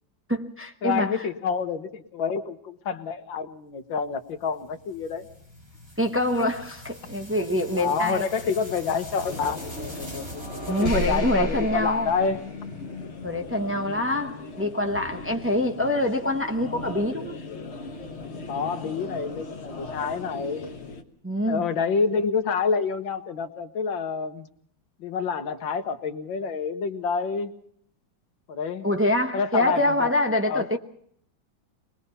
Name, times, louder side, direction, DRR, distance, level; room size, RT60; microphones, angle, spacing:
voice 1, 0.3-1.2 6.0-8.3 10.7-12.1 13.2-17.3 21.2-21.7 28.8-30.8, left 1 dB, 15° right, 0.4 m, -25 dB
voice 2, 0.8-5.3 7.8-10.1 10.7-12.4 13.7-13.9 18.5-20.6 21.5-24.5 25.0-27.5 28.5-28.9 29.3-30.1 30.5-30.8, left 5 dB, 85° left, 2.0 m, -28 dB
sound 1, 4.4-13.0, equal, 45° right, 8.0 m, -37 dB
sound 2, 9.3-21.0, left 3 dB, 40° left, 1.4 m, -39 dB
23.0 x 20.0 x 5.6 m
omnidirectional pair, 2.1 m